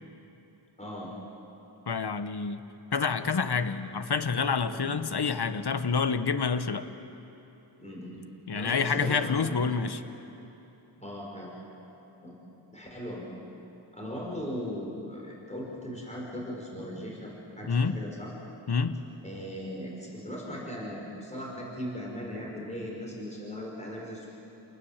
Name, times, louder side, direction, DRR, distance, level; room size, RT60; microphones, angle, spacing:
voice 1, 0.8-1.1 4.7-4.9 7.8-8.2 8.5-9.7 11.0-11.5 12.2-12.4 12.7-13.4 13.9-18.3 19.2-24.3, equal, 15° left, -3 dB, 5.4 m, -38 dB
voice 2, 1.9-2.6 2.9-6.9 8.5-10.0 17.7-18.0 18.7-19.0, left 5 dB, 55° left, 11 dB, 1.1 m, -28 dB
29.5 x 19.5 x 7.3 m, 3.0 s
wide cardioid pair, 80°, 47 cm